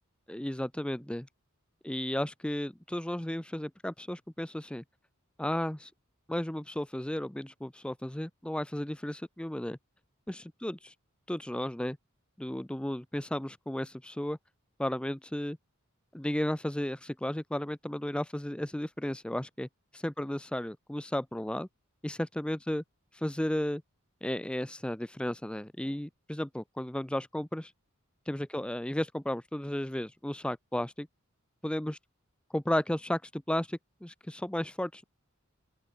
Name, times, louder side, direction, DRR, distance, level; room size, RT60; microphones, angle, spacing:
voice 1, 0.3-1.3 1.8-4.8 5.4-5.9 6.3-9.8 10.3-10.9 11.3-12.0 12.4-14.4 14.8-15.6 16.1-21.7 22.0-22.8 23.1-23.8 24.2-27.7 28.3-31.1 31.6-32.0 32.5-35.0, left 1 dB, 5° left, 0.5 m, -34 dB
open air
head